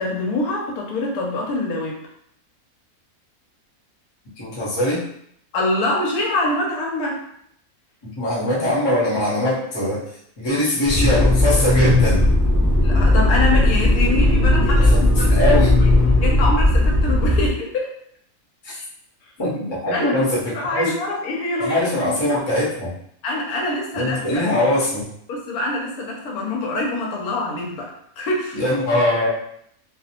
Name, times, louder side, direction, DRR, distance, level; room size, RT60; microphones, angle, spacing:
voice 1, 0.0-2.0 5.5-7.2 12.8-15.9 16.2-17.9 19.9-20.2 20.5-22.4 23.2-24.4 25.3-28.6, left 2 dB, 85° left, -1 dB, 1.2 m, -25 dB
voice 2, 4.4-5.0 8.0-10.0 10.4-12.3 14.5-15.8 18.6-18.8 19.4-20.9 21.6-22.9 23.9-25.1 28.5-29.3, left 1 dB, 25° left, -7 dB, 0.7 m, -22 dB
Motor vehicle (road), 10.8-17.5, left 1 dB, ahead, 0.3 m, -16 dB
2.6 x 2.1 x 2.7 m, 0.69 s
omnidirectional pair, 1.5 m